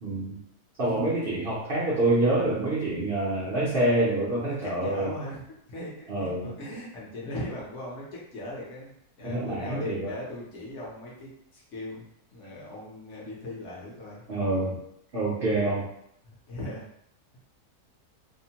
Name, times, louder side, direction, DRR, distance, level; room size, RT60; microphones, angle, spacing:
voice 1, 0.0-0.4 0.8-5.1 6.1-6.5 9.2-10.1 14.3-14.8 15.1-15.8, right 2 dB, 55° right, -7 dB, 0.6 m, -26 dB
voice 2, 4.4-12.0 12.3-14.2 16.5-16.9, left 1 dB, 60° left, -4 dB, 1.0 m, -39 dB
2.8 x 2.1 x 2.8 m, 0.75 s
omnidirectional pair, 1.7 m